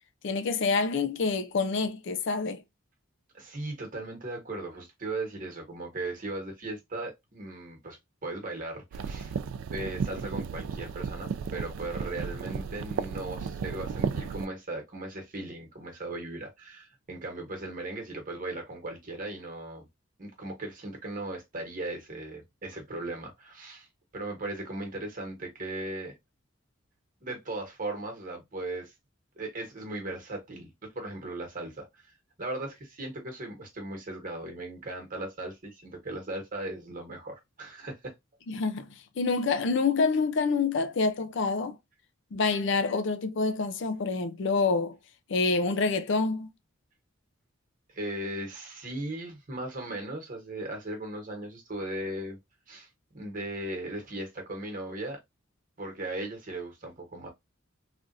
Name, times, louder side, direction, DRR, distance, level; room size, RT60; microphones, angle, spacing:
voice 1, 0.2-2.6 38.5-38.9 39.2-41.8 42.3-45.0 45.3-46.5, left 4 dB, 60° left, 0.4 m, -27 dB
voice 2, 3.3-9.3 9.7-19.9 20.2-23.9 24.1-26.1 27.2-28.9 29.4-32.1 32.4-38.1 47.9-52.4 52.7-55.2 55.8-57.3, right 2 dB, 40° right, 1.2 m, -37 dB
sound 1, 8.9-14.5, right 6 dB, 85° right, 0.3 m, -34 dB
3.3 x 2.5 x 2.5 m
head